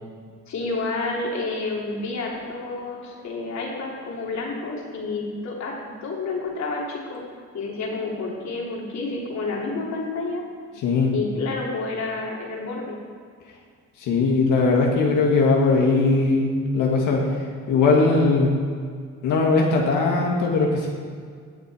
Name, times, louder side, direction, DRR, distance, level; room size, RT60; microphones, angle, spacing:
voice 1, 0.5-7.2 7.5-10.4 11.1-13.0, left 3 dB, 65° left, -2 dB, 3.2 m, -29 dB
voice 2, 10.8-11.1 14.0-17.2 17.7-18.5 19.2-20.9, left 3 dB, 85° left, -1 dB, 1.8 m, -19 dB
18.5 x 7.0 x 4.9 m, 2.1 s
cardioid pair, 90°, 30 cm